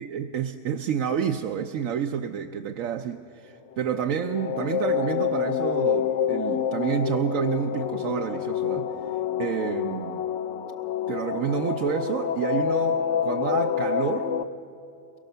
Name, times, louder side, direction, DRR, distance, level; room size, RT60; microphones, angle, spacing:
voice 1, 0.0-8.9 9.4-10.2 11.1-14.3, right 8 dB, 80° right, 5 dB, 1.1 m, -29 dB
sound 1, 3.8-14.4, left 8 dB, 65° left, 1.0 m, -27 dB
23.0 x 22.0 x 6.8 m, 2.5 s
omnidirectional pair, 1.4 m